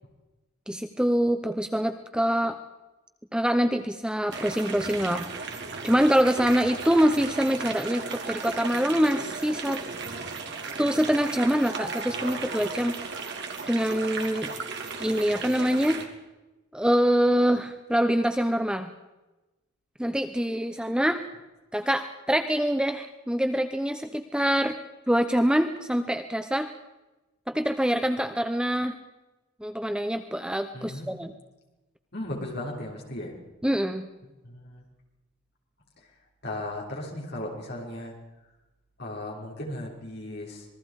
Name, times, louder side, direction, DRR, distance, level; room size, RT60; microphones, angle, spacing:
voice 1, 0.7-2.6 3.3-5.3 5.8-9.8 10.8-13.0 13.7-14.5 15.0-16.0 16.7-18.9 20.0-21.2 21.7-24.8 25.1-26.7 27.5-29.0 29.6-31.3 33.6-34.1, equal, 5° right, 7 dB, 0.8 m, -25 dB
sound 1, 4.3-16.1, right 4 dB, 50° right, 2.6 m, -35 dB
voice 2, 30.7-31.1 32.1-33.3 34.4-34.8 36.4-38.1 39.0-40.7, left 1 dB, 50° left, -1 dB, 5.5 m, -36 dB
27.0 x 20.5 x 5.0 m, 1.1 s
head